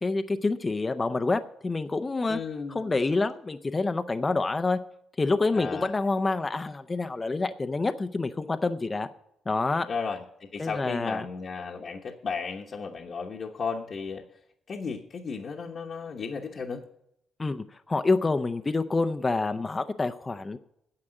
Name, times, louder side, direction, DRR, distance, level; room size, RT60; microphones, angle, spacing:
voice 1, 0.0-2.4 2.7-4.8 5.2-9.1 9.5-9.9 10.6-11.3 17.4-20.6, left 3 dB, 25° left, 8 dB, 0.6 m, -27 dB
voice 2, 2.3-3.0 5.5-5.9 9.9-14.2 14.7-16.8, left 5 dB, 50° left, 0 dB, 1.1 m, -34 dB
9.8 x 7.6 x 7.7 m, 0.78 s
cardioid pair, 90°, 0 cm